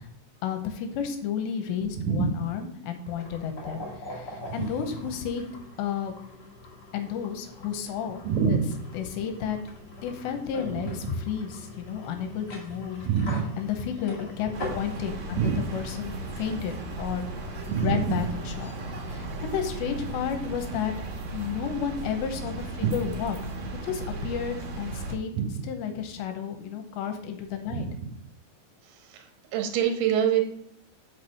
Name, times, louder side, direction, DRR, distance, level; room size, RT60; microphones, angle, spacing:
voice 1, 0.4-5.5 5.8-6.1 6.9-8.6 8.9-9.6 10.0-13.1 13.6-17.3 17.8-18.7 19.0-20.9 21.3-25.3 25.6-27.9, left 7 dB, 80° left, 6 dB, 2.8 m, -32 dB
sound 1, 3.1-19.7, left 2 dB, 35° left, 1.8 m, -43 dB
voice 2, 8.2-8.7 13.0-13.5 15.4-15.6 17.7-18.2 22.8-22.9 25.4-25.5 27.7-27.9 29.1-29.3 29.5-30.5, right 8 dB, 70° right, 4 dB, 2.0 m, -25 dB
sound 2, 14.5-25.2, right 3 dB, 90° right, 1.5 m, -36 dB
6.0 x 6.0 x 6.5 m, 0.70 s
omnidirectional pair, 5.6 m